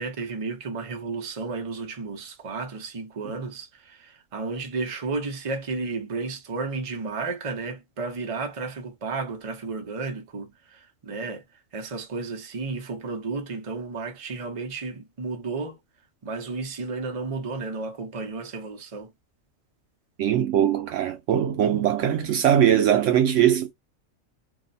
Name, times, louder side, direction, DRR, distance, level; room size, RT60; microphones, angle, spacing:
voice 1, 0.0-11.4 11.7-15.8 16.2-19.1, right 4 dB, 35° right, 0.6 m, -33 dB
voice 2, 20.2-23.7, right 10 dB, 70° right, 0.8 m, -21 dB
2.7 x 2.1 x 3.9 m
omnidirectional pair, 1.4 m